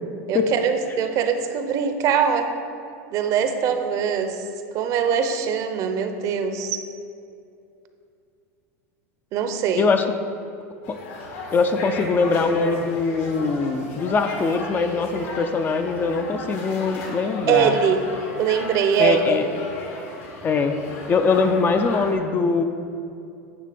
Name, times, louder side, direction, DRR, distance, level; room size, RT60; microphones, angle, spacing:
voice 1, 0.3-2.5 3.1-4.4 4.7-6.8 9.3-9.9 17.5-18.0 18.4-19.4, right 7 dB, 45° right, 7 dB, 0.7 m, -22 dB
sound 1, 10.8-22.1, left 2 dB, 70° left, 1.7 m, -35 dB
voice 2, 11.5-17.8 19.0-19.5 20.4-20.8 21.1-22.6, left 4 dB, 25° left, 7 dB, 0.5 m, -22 dB
9.8 x 3.3 x 6.8 m, 2.6 s
supercardioid pair, 125°, 8 cm